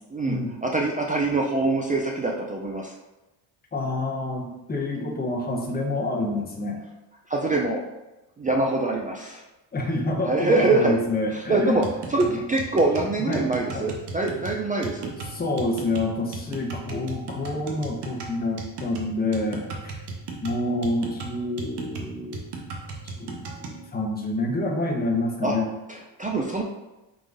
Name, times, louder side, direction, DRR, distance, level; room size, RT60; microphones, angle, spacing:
voice 1, 0.1-2.9 7.3-7.8 8.4-9.4 10.2-11.0 11.3-11.8 12.1-15.1 25.4-25.6 25.9-26.6, right 2 dB, 20° right, -1 dB, 0.3 m, -24 dB
voice 2, 3.7-6.8 9.7-11.9 12.2-12.4 13.3-13.5 13.7-13.9 15.3-19.9 20.4-22.5 23.0-25.7, left 2 dB, 20° left, 0 dB, 0.8 m, -28 dB
sound 1, 11.8-23.8, right 3 dB, 60° right, 0.9 m, -36 dB
4.4 x 3.9 x 2.5 m, 1.0 s
cardioid pair, 95°, 46 cm